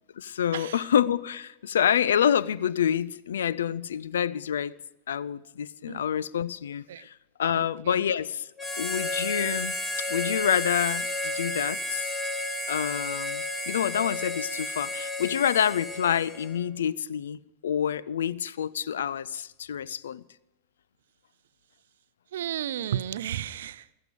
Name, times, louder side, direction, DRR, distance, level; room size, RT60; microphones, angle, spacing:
voice 1, 0.2-4.7 5.1-7.1 7.4-8.5 8.8-12.1 12.7-20.2, left 9 dB, 65° left, 0.4 m, -27 dB
voice 2, 7.5-8.0 22.3-23.8, right 10 dB, 60° right, 0.5 m, -33 dB
Harmonica, 8.6-16.6, left 1 dB, 15° left, 1.6 m, -32 dB
15.0 x 13.0 x 5.1 m
figure-of-eight pair, 90°, 0 cm